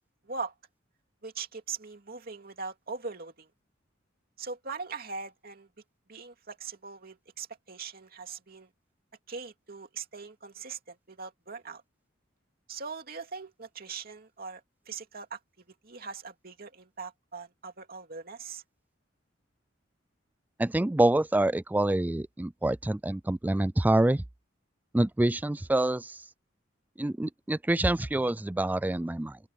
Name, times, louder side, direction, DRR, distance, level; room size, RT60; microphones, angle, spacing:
voice 1, 0.2-0.6 1.2-3.5 4.4-5.7 6.1-8.7 9.3-11.8 12.7-15.4 15.7-18.6, right 5 dB, 50° right, 2.7 m, -41 dB
voice 2, 20.6-24.2 24.9-26.2 27.0-29.4, right 1 dB, 10° right, 0.3 m, -26 dB
open air
head